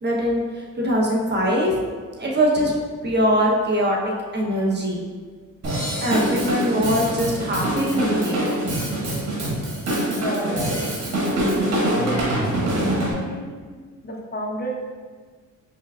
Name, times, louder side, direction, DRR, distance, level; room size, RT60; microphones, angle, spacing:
voice 1, 0.0-0.4 0.8-1.7 2.2-2.7 3.0-4.0 4.3-5.0 6.0-8.5, equal, 35° right, -2 dB, 0.8 m, -22 dB
Drum kit / Drum, 5.6-13.1, right 1 dB, 60° right, 1.4 m, -24 dB
voice 2, 10.0-10.8 11.8-12.3 12.6-13.5 14.0-14.7, equal, 30° left, -1 dB, 0.6 m, -31 dB
4.6 x 3.3 x 2.3 m, 1.5 s
cardioid pair, 90°, 30 cm